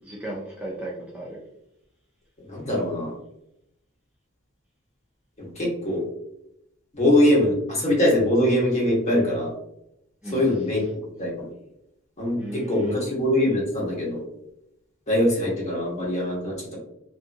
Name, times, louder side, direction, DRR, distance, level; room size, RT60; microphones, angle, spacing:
voice 1, 0.0-1.4 10.2-10.5 12.4-13.0, right 1 dB, 5° right, -5 dB, 0.4 m, -35 dB
voice 2, 2.5-3.1 5.4-6.0 6.9-9.5 10.3-10.8 11.2-11.5 12.2-14.2 15.1-16.8, left 1 dB, 35° left, -3 dB, 1.0 m, -22 dB
2.7 x 2.6 x 2.5 m, 0.80 s
head